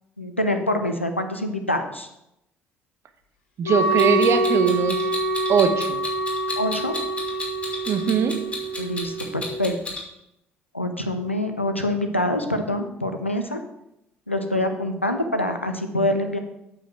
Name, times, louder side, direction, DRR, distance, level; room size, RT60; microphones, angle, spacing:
voice 1, 0.2-2.1 6.6-7.0 8.8-9.8 10.7-13.6 14.3-16.4, left 1 dB, 90° left, 6 dB, 0.6 m, -25 dB
Wind instrument woodwind instrument, 3.6-9.5, right 1 dB, 70° left, 2.1 m, -26 dB
voice 2, 3.6-5.1 5.5-6.0 7.9-8.4, right 6 dB, 45° right, 8 dB, 1.0 m, -21 dB
Clock, 4.0-10.0, left 2 dB, 20° left, 2.4 m, -32 dB
8.2 x 6.8 x 4.6 m, 0.84 s
figure-of-eight pair, 50°, 6 cm